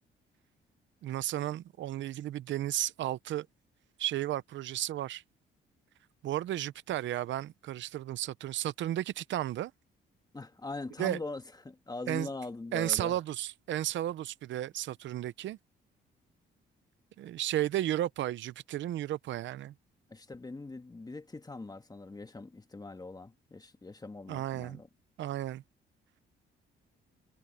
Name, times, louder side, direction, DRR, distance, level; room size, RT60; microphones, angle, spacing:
voice 1, 1.0-3.5 4.0-5.2 6.2-9.7 11.0-11.2 12.1-12.3 12.7-15.6 17.2-19.7 24.3-24.8 25.2-25.6, right 13 dB, 70° right, 0.7 m, -33 dB
voice 2, 10.3-13.2 20.1-24.9, left 3 dB, 20° left, 1.8 m, -42 dB
cardioid pair, 90°, 20 cm